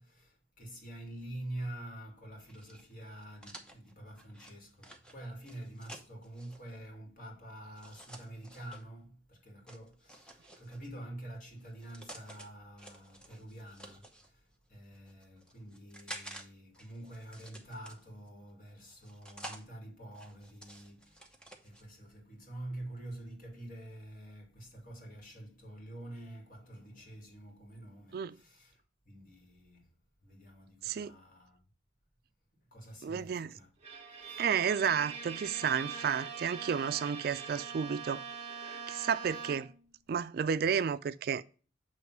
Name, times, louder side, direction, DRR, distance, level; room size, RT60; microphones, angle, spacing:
voice 1, 0.0-21.4 21.6-31.6 32.7-33.7 34.1-34.5 39.3-39.5, right 1 dB, 50° left, 2.0 m, -47 dB
sound 1, 2.5-6.6 7.7-8.8 9.7-10.9 11.6-12.5 12.8-14.3 14.9-16.4 16.7-18.3 18.9-19.6 20.1-21.8, right 1 dB, 5° left, 0.9 m, -50 dB
voice 2, 33.0-33.5 34.4-38.2 38.9-39.7 40.1-41.4, right 7 dB, 55° right, 0.3 m, -31 dB
Bowed string instrument, 33.8-39.9, right 5 dB, 35° right, 1.2 m, -43 dB
7.4 x 3.1 x 5.9 m
head